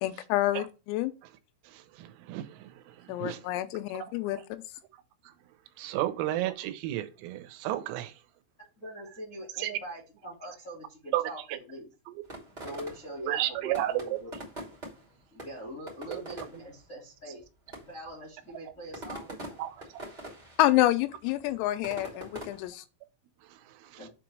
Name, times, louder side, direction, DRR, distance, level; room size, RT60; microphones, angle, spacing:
voice 1, 0.0-1.1 3.1-4.4 20.6-22.8, left 15 dB, 85° left, 3.4 m, -27 dB
voice 2, 1.7-3.4 3.9-4.1 5.8-8.1 9.6-9.8 11.1-11.6 12.1-12.2 13.3-14.2 16.1-16.2 19.6-19.8 23.5-24.0, right 14 dB, 90° right, 3.5 m, -33 dB
voice 3, 8.8-11.9 12.6-14.3 15.3-17.4 17.8-19.6 24.0-24.1, equal, 55° left, 0.8 m, -43 dB
sound 1, 12.3-13.3 13.7-15.1 15.4-16.7 17.4-17.5 17.7-18.1 18.7-20.7 20.9-22.7, right 1 dB, 65° right, 0.4 m, -43 dB
7.6 x 3.0 x 6.0 m
omnidirectional pair, 5.9 m